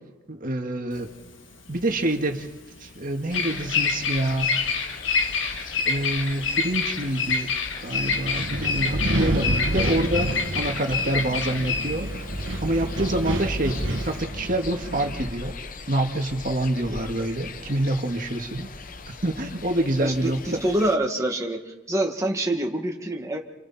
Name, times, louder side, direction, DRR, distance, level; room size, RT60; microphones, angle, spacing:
voice 1, 0.3-1.1 1.7-2.5 2.8-4.6 5.1-7.5 7.8-12.1 12.6-15.5 15.9-18.7 19.2-20.6, right 1 dB, 40° right, 3 dB, 2.1 m, -27 dB
Bird vocalization bird call bird song, 0.9-14.2, left 5 dB, 65° left, 1.7 m, -28 dB
sound 1, 3.3-21.0, left 4 dB, 40° left, 0.9 m, -40 dB
Wind, 7.9-15.3, right 1 dB, 70° right, 1.8 m, -29 dB
voice 2, 20.0-23.4, right 1 dB, 15° right, 1 dB, 2.1 m, -26 dB
29.0 x 28.5 x 4.4 m, 1.1 s
head